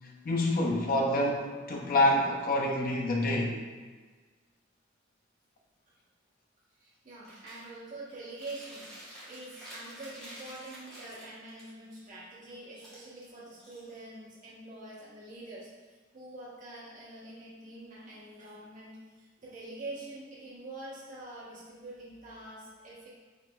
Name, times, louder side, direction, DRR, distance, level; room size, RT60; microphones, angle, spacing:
voice 1, 0.0-3.6, left 1 dB, 45° left, 0 dB, 0.6 m, -27 dB
voice 2, 6.8-23.1, right 2 dB, 45° right, -8 dB, 1.3 m, -45 dB
Chewing mastication, 7.2-7.7 8.1-11.6 12.7-14.2, equal, 5° left, 1.2 m, -49 dB
4.7 x 3.3 x 2.3 m, 1.4 s
head